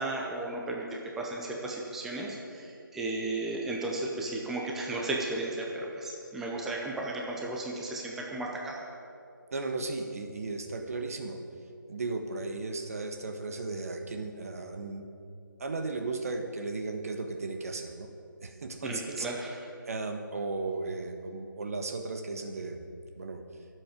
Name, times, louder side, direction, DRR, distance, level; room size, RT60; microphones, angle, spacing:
voice 1, 0.0-8.8 18.8-19.6, right 2 dB, 5° right, -2 dB, 0.7 m, -34 dB
voice 2, 9.5-11.4 11.9-15.1 15.6-18.1 18.4-19.3 19.9-22.8 23.2-23.4, right 3 dB, 45° right, 5 dB, 1.3 m, -35 dB
23.0 x 7.9 x 5.1 m, 2.6 s
figure-of-eight pair, 160°, 11 cm